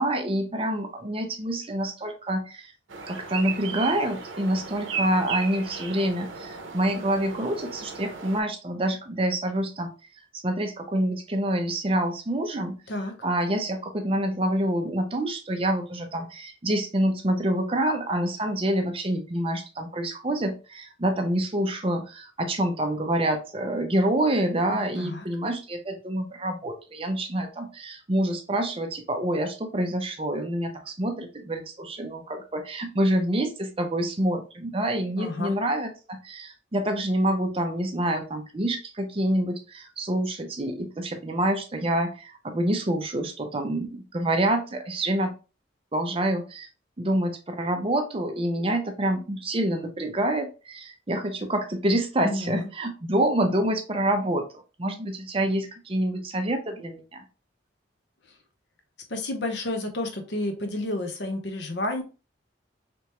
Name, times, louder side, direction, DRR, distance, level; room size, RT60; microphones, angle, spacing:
voice 1, 0.0-2.7 3.1-9.9 10.4-12.8 13.2-45.3 45.9-46.7 47.0-54.5 54.8-57.2, right 1 dB, 30° right, 5 dB, 0.6 m, -27 dB
sound 1, 2.9-8.4, right 5 dB, 80° right, 0.7 m, -35 dB
voice 2, 24.7-25.3 35.1-35.5 52.2-52.7 59.1-62.0, left 2 dB, 60° left, 4 dB, 0.8 m, -30 dB
3.4 x 2.9 x 2.9 m, 0.32 s
head